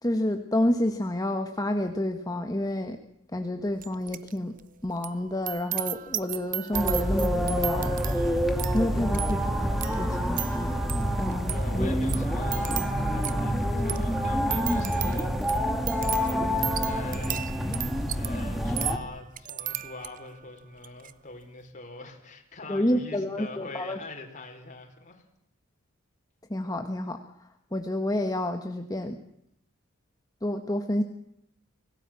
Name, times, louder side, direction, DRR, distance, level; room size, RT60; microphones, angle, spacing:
voice 1, 0.0-3.0 3.3-4.5 4.8-7.9 8.7-10.4 11.2-11.9 22.7-24.0 26.5-27.2 27.7-29.2 30.4-31.0, left 1 dB, 15° left, 6 dB, 1.4 m, -29 dB
sound 1, 3.8-4.3 4.6-20.4 20.8-21.1, right 12 dB, 40° right, 0.9 m, -36 dB
sound 2, 6.7-19.0, equal, ahead, 2.4 m, -27 dB
voice 2, 9.1-9.5 11.5-12.8 13.1-15.4 15.6-17.4 18.1-25.2, left 2 dB, 35° left, 2 dB, 4.7 m, -43 dB
25.5 x 18.0 x 7.6 m, 0.79 s
head